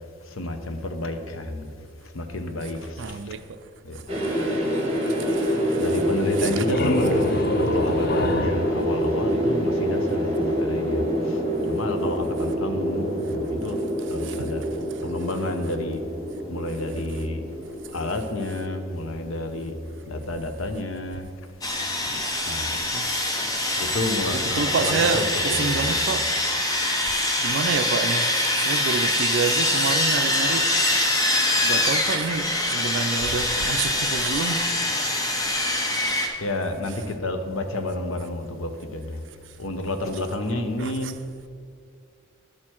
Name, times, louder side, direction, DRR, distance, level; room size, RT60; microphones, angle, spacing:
voice 1, 0.3-1.7 2.1-3.2 3.8-4.0 5.8-13.8 14.1-14.6 15.0-16.0 16.5-17.4 17.9-19.7 20.1-21.3 22.5-22.7 23.8-26.0 34.2-34.3 35.5-35.9 36.4-39.2 39.6-41.2, left 2 dB, 80° left, 0.8 m, -30 dB
voice 2, 3.0-3.6 3.9-4.6 5.0-5.9 6.4-6.6 14.2-14.5 20.2-20.3 22.2-22.4 22.7-23.1 24.3-34.9 35.7-36.2 40.8-41.1, right 5 dB, 65° right, 0.4 m, -30 dB
sound 1, 4.1-20.2, equal, 30° right, 1.8 m, -26 dB
sound 2, 6.3-10.0, left 2 dB, 50° left, 0.4 m, -28 dB
Sawing, 21.6-36.3, left 1 dB, 15° left, 0.8 m, -24 dB
10.5 x 6.4 x 4.4 m
head